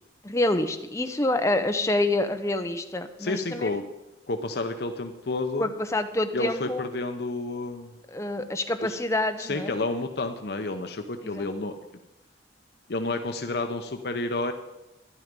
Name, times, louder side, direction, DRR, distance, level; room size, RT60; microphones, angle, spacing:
voice 1, 0.2-3.7 5.6-6.9 8.1-9.7 11.2-11.5, left 1 dB, 15° left, 7 dB, 0.8 m, -27 dB
voice 2, 3.2-3.8 4.3-5.7 6.3-7.9 8.8-8.9 9.4-11.7 12.9-14.5, left 2 dB, 60° left, 6 dB, 0.8 m, -30 dB
13.0 x 11.0 x 5.3 m, 0.97 s
head